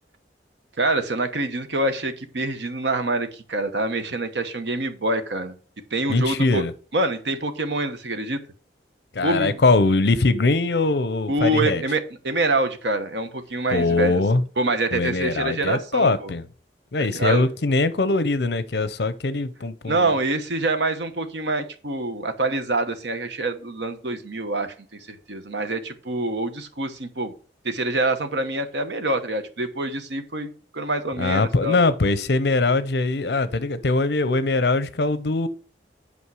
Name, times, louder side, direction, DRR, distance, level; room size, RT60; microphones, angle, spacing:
voice 1, 0.8-5.5 5.9-6.6 6.9-8.4 9.2-9.6 11.3-14.2 14.6-16.3 17.0-17.5 19.9-24.7 25.1-27.3 27.6-31.8, right 2 dB, 85° right, 1.1 m, -26 dB
voice 2, 6.1-6.7 9.1-11.8 13.7-14.4 14.9-16.5 16.9-20.0 31.2-35.5, left 3 dB, 70° left, 0.7 m, -22 dB
8.5 x 5.4 x 4.8 m
head